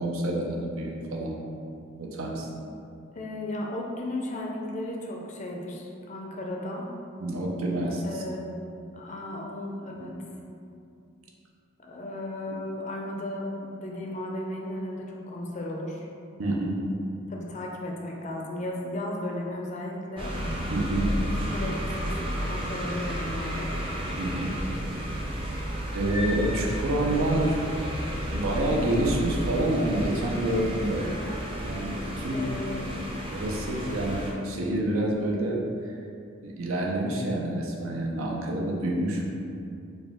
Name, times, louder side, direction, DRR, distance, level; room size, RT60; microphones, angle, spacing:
voice 1, 0.0-1.4 2.0-2.5 7.2-8.2 10.0-10.1 16.4-16.8 20.7-21.1 24.2-24.6 25.9-27.6 28.3-31.1 31.6-32.5 33.3-35.6 36.4-39.3, right 1 dB, 85° right, -2 dB, 0.6 m, -28 dB
voice 2, 3.1-6.9 8.0-8.5 8.9-10.1 11.8-16.1 17.3-20.3 21.0-21.2 21.5-21.9 22.2-23.7 32.3-32.8, left 1 dB, 35° left, -1 dB, 0.4 m, -35 dB
sound 1, 20.2-34.3, equal, 25° right, 0.5 m, -32 dB
4.2 x 2.3 x 3.6 m, 2.5 s
head